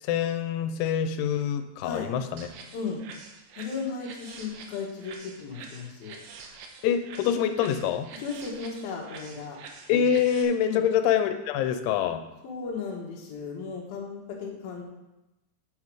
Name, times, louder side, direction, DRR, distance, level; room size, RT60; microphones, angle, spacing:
voice 1, 0.0-2.5 6.8-8.1 9.9-12.2, left 8 dB, 90° left, 8 dB, 3.1 m, -25 dB
sound 1, 2.4-10.4, right 5 dB, 85° right, 3.3 m, -46 dB
voice 2, 2.7-3.0 3.6-6.2 8.2-9.6 10.6-10.9 12.4-14.8, left 5 dB, 60° left, -1 dB, 3.1 m, -35 dB
9.6 x 7.2 x 4.8 m, 0.98 s
omnidirectional pair, 5.2 m